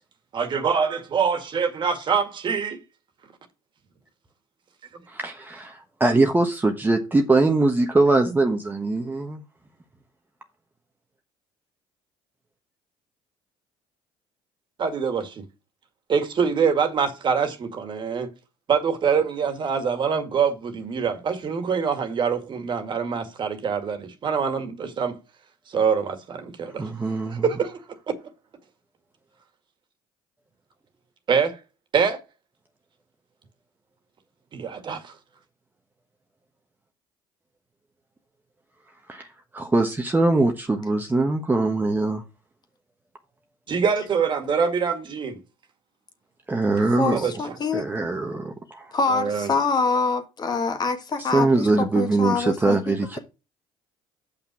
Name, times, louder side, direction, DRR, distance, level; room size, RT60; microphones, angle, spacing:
voice 1, 0.3-2.8 14.8-15.4 16.1-18.3 18.7-25.2 25.7-26.9 27.4-27.8 31.3-31.6 31.9-32.2 34.5-35.1 43.7-45.4 47.1-47.3 49.1-49.5, right 6 dB, 45° right, 2.0 m, -24 dB
voice 2, 5.2-5.7 6.0-9.4 26.6-27.4 39.1-39.3 39.5-42.2 46.5-47.2 47.7-48.9 51.2-53.2, right 3 dB, 15° right, 1.2 m, -22 dB
voice 3, 47.0-47.9 48.9-53.2, left 4 dB, 40° left, 1.8 m, -25 dB
6.7 x 5.8 x 6.1 m
supercardioid pair, 85°, 11 cm